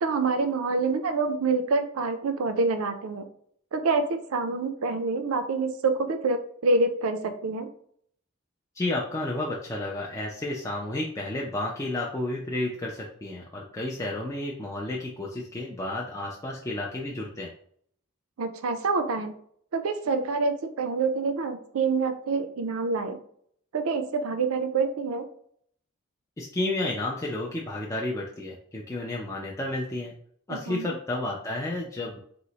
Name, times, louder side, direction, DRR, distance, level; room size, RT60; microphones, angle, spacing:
voice 1, 0.0-3.2 3.7-7.7 18.4-19.3 19.7-23.2 23.7-25.2 30.5-30.9, right 4 dB, 75° right, 8 dB, 0.4 m, -27 dB
voice 2, 8.8-17.5 26.4-30.1 30.5-32.2, left 2 dB, 15° left, -2 dB, 0.3 m, -31 dB
2.9 x 2.0 x 3.9 m, 0.63 s
head